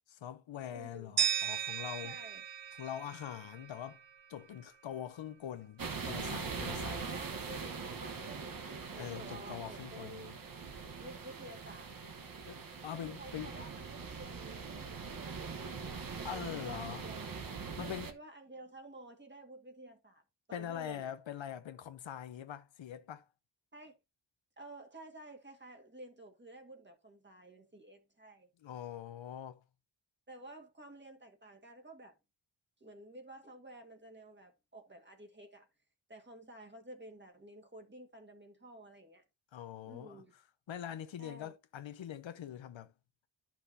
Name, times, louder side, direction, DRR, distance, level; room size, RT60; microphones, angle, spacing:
voice 1, 0.1-2.2 2.8-4.0 4.3-7.2 9.0-10.3 12.4-13.5 16.2-17.0 17.8-18.1 20.5-23.3 28.6-29.6 39.5-40.2 40.7-42.9, left 10 dB, 75° left, 0.8 m, -43 dB
voice 2, 0.7-1.2 2.0-2.4 6.8-10.3 11.0-11.9 12.9-17.3 17.8-20.2 20.5-21.1 23.7-23.9 24.6-28.5 30.3-32.2 32.8-35.7 36.1-39.2 39.9-40.3 41.2-41.5, right 1 dB, 25° right, 1.7 m, -52 dB
sound 1, 1.2-4.1, right 9 dB, 80° right, 1.1 m, -36 dB
sound 2, 5.8-18.1, right 5 dB, 45° right, 1.1 m, -42 dB
11.5 x 5.9 x 2.7 m
wide cardioid pair, 90°, 46 cm